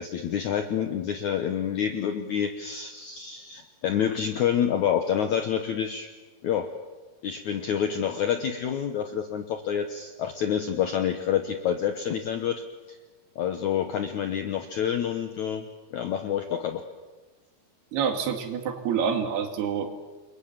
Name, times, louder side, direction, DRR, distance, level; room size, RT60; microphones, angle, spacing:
voice 1, 0.0-6.1 6.4-6.7 7.2-12.6 12.9-13.0 13.4-15.7 15.9-16.8, left 8 dB, 70° left, 7 dB, 1.8 m, -28 dB
voice 2, 17.9-20.0, right 7 dB, 70° right, 5 dB, 4.1 m, -27 dB
29.5 x 23.0 x 7.4 m, 1.3 s
omnidirectional pair, 4.9 m